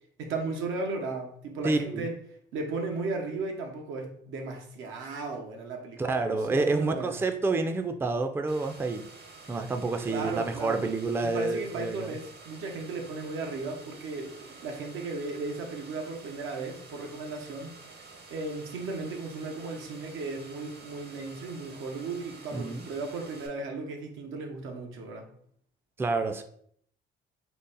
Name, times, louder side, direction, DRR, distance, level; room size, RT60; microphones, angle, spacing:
voice 1, 0.2-2.1 2.5-7.2 10.1-10.8 11.2-17.7 18.3-25.3, right 3 dB, 90° right, 2 dB, 0.7 m, -35 dB
voice 2, 1.6-2.1 6.0-9.0 9.5-12.2 22.5-22.9 26.0-26.4, right 3 dB, 10° right, 7 dB, 0.3 m, -28 dB
sound 1, 8.5-23.5, right 3 dB, 55° right, 0.8 m, -49 dB
3.9 x 2.0 x 3.9 m, 0.65 s
cardioid pair, 90°, 20 cm